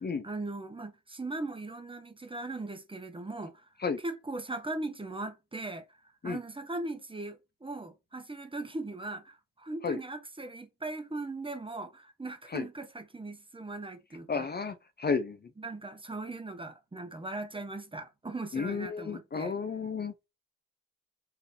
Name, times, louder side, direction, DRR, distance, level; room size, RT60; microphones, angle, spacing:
voice 1, 0.2-3.7 4.0-5.9 6.2-14.5 15.6-19.5, right 2 dB, 15° right, 0.9 m, -39 dB
voice 2, 14.3-15.4 18.5-20.3, left 5 dB, 30° left, 0.7 m, -32 dB
4.7 x 2.8 x 3.3 m
cardioid pair, 75°, 32 cm